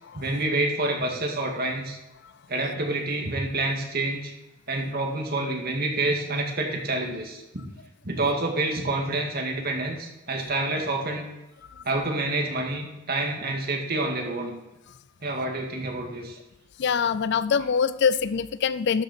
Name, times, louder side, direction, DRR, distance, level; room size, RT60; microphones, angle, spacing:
voice 1, 0.1-2.0 2.5-4.3 4.7-7.4 8.0-11.3 11.8-14.5 15.2-16.4, right 2 dB, 50° right, 1 dB, 2.0 m, -28 dB
voice 2, 16.8-19.0, left 6 dB, 55° left, 15 dB, 0.4 m, -24 dB
12.5 x 6.6 x 4.3 m, 0.98 s
head